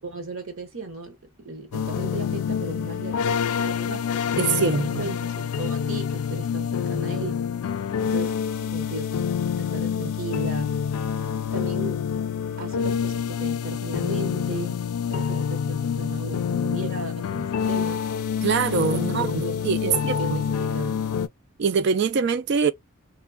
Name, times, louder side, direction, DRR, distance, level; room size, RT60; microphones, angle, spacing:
voice 1, 0.0-4.5 4.8-7.4 8.0-8.3 8.6-9.3 9.6-10.8 11.5-12.1 12.6-18.0 18.9-21.0, right 2 dB, 70° right, 0.9 m, -36 dB
sound 1, 1.7-21.3, left 7 dB, 90° left, 0.4 m, -27 dB
voice 2, 4.4-5.1 18.4-20.2 21.6-22.7, right 6 dB, 50° right, 0.3 m, -23 dB
3.3 x 2.1 x 2.3 m
head